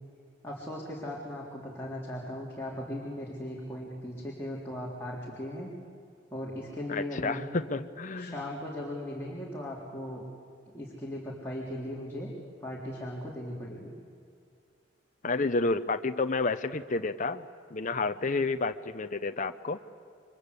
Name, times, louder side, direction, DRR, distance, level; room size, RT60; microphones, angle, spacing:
voice 1, 0.4-5.7 6.3-7.4 8.2-10.2 10.7-12.3 12.6-13.9, left 1 dB, 15° left, -4 dB, 3.7 m, -38 dB
voice 2, 6.9-8.4 15.2-17.4 17.7-19.8, left 3 dB, 45° left, 8 dB, 0.8 m, -30 dB
29.5 x 24.0 x 8.3 m, 2.3 s
head